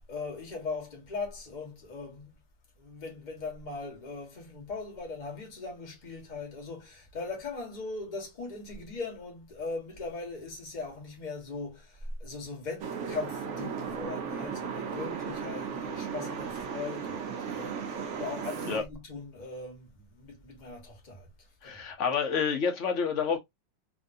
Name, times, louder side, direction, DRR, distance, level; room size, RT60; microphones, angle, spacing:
voice 1, 0.1-2.4 2.8-21.3 21.6-21.8, left 3 dB, 30° left, 1.1 m, -39 dB
sound 1, 12.8-18.8, right 6 dB, 75° right, 0.6 m, -36 dB
voice 2, 21.6-23.4, left 6 dB, 50° left, 0.9 m, -28 dB
3.4 x 2.5 x 2.5 m
omnidirectional pair, 2.1 m